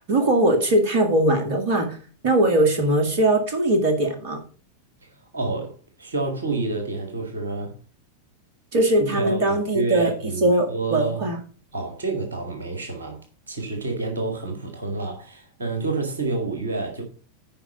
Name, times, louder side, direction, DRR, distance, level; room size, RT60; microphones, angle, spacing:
voice 1, 0.1-2.0 2.2-4.4 8.7-10.1 10.4-11.4, right 1 dB, 50° right, 2.0 m, -20 dB
voice 2, 5.0-7.8 9.0-11.3 11.7-17.0, right 3 dB, 75° right, 1.8 m, -29 dB
10.0 x 5.1 x 5.0 m
figure-of-eight pair, 90°, 0 cm